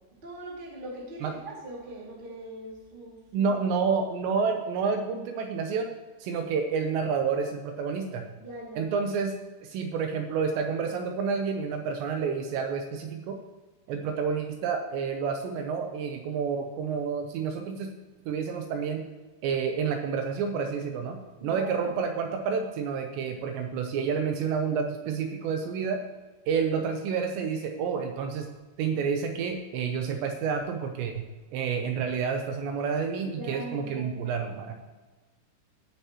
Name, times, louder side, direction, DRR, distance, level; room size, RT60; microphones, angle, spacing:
voice 1, 0.2-3.5 8.4-9.1 21.4-21.9 33.3-34.4, right 2 dB, 40° right, -4 dB, 0.7 m, -41 dB
voice 2, 3.3-5.9 6.2-8.3 8.8-13.4 13.9-17.9 18.3-19.0 19.4-26.0 26.5-28.5 28.8-31.2 31.5-34.7, right 6 dB, 80° right, 4 dB, 2.7 m, -29 dB
17.5 x 6.9 x 3.0 m, 1.3 s
omnidirectional pair, 5.6 m